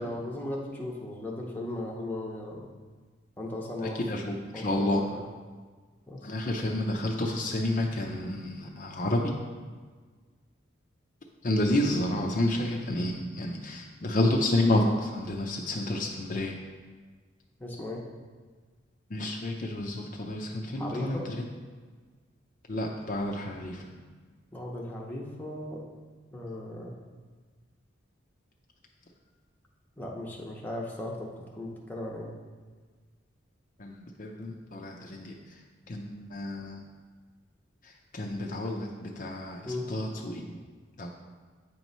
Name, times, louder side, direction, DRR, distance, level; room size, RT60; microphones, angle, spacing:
voice 1, 0.0-2.7 3.4-4.0 4.5-5.2 6.1-6.3 17.6-18.0 20.8-21.3 24.5-25.8 26.3-26.9 30.0-32.3 39.7-39.9, left 1 dB, 10° left, -2 dB, 0.8 m, -37 dB
voice 2, 3.8-5.0 6.2-9.4 11.4-16.6 19.1-21.5 22.7-24.1 33.8-36.8 37.8-40.6 41.0-41.1, left 1 dB, 45° left, 0 dB, 0.6 m, -30 dB
8.4 x 3.0 x 5.4 m, 1.5 s
head